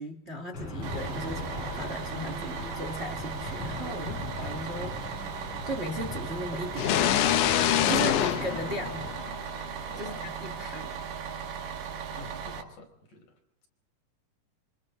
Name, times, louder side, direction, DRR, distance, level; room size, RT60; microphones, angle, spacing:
voice 1, 0.0-7.3 7.9-9.1 10.0-10.8, right 1 dB, 25° right, 4 dB, 1.4 m, -37 dB
Aircraft / Engine, 0.5-9.1, left 3 dB, 30° left, 6.7 m, -39 dB
Bus, 0.8-12.6, right 7 dB, 85° right, 4.2 m, -37 dB
sound 1, 6.8-9.6, left 11 dB, 85° left, 1.8 m, -25 dB
voice 2, 9.9-10.3 10.7-10.9 12.1-13.3, left 2 dB, 50° left, 2 dB, 6.1 m, -47 dB
26.5 x 26.5 x 4.0 m, 0.68 s
omnidirectional pair, 4.9 m